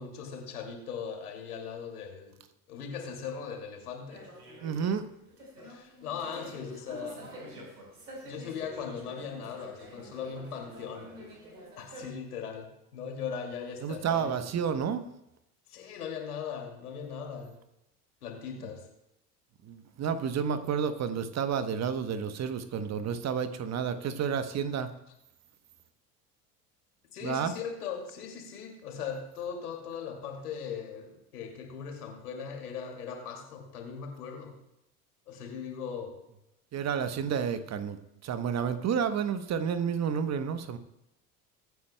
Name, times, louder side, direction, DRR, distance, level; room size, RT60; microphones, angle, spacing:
voice 1, 0.0-2.4 2.7-4.3 5.6-7.3 8.2-11.2 11.6-14.4 15.7-17.6 18.2-18.9 27.1-34.6 35.3-36.2, left 6 dB, 75° left, 2 dB, 2.6 m, -39 dB
sound 1, 4.1-12.1, equal, 80° right, 4.5 m, -47 dB
voice 2, 4.6-5.1 13.8-15.1 19.6-24.9 27.2-27.5 36.7-40.8, right 7 dB, 35° right, 10 dB, 1.1 m, -30 dB
23.0 x 9.3 x 2.3 m, 0.85 s
figure-of-eight pair, 70°, 45 cm